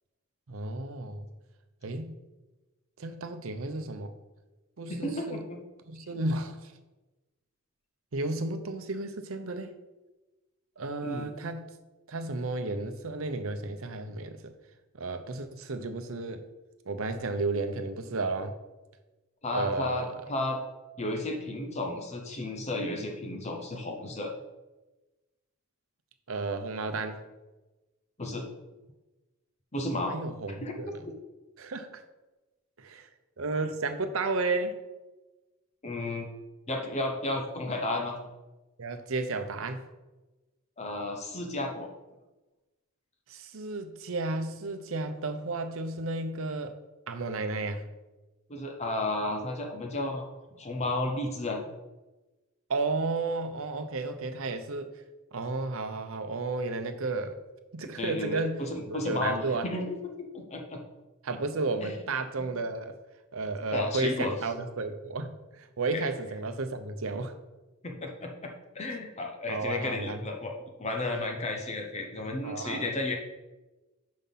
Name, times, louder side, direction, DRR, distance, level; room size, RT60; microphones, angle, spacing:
voice 1, 0.5-1.3 1.8-2.1 3.0-4.1 4.8-5.4 5.9-6.7 8.1-9.7 10.8-11.7 12.1-14.5 15.0-16.4 16.9-18.5 19.5-20.2 26.3-27.2 30.1-30.9 31.6-32.0 32.8-33.1 33.4-34.8 38.8-39.8 43.3-46.8 47.1-47.9 52.7-55.0 55.3-57.4 57.7-59.7 61.2-62.9 63.3-67.3 69.5-70.2 72.4-72.9, right 3 dB, 70° right, 8 dB, 0.7 m, -33 dB
voice 2, 4.9-5.6 11.0-11.3 19.4-20.6 21.0-24.3 28.2-28.4 29.7-30.1 30.6-31.1 35.8-36.3 36.7-38.2 40.8-41.9 48.5-50.3 50.5-51.6 58.0-59.4 59.6-60.8 61.8-62.0 63.7-64.3 65.9-66.0 67.8-73.1, left 2 dB, 30° left, 2 dB, 0.8 m, -33 dB
5.7 x 5.3 x 5.5 m, 1.1 s
head